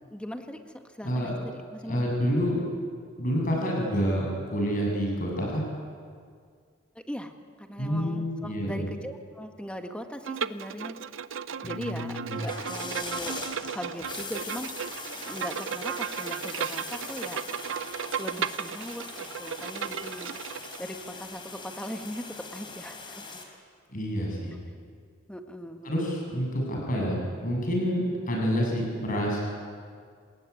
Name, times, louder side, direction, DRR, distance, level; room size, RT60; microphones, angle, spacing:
voice 1, 0.1-2.2 7.0-7.3 7.6-11.0 11.6-13.3 13.7-17.4 18.2-20.4 20.8-23.4 25.3-26.0, equal, 5° left, 5 dB, 1.7 m, -39 dB
voice 2, 1.8-2.6 3.2-5.6 7.8-8.9 11.6-12.5 23.9-24.6 25.8-29.4, equal, 45° left, -1 dB, 7.8 m, -28 dB
Bowed string instrument, 10.2-20.8, right 7 dB, 70° right, 0.7 m, -35 dB
sound 1, 12.3-23.4, left 4 dB, 25° left, 3.7 m, -41 dB
26.0 x 20.0 x 9.8 m, 2.1 s
head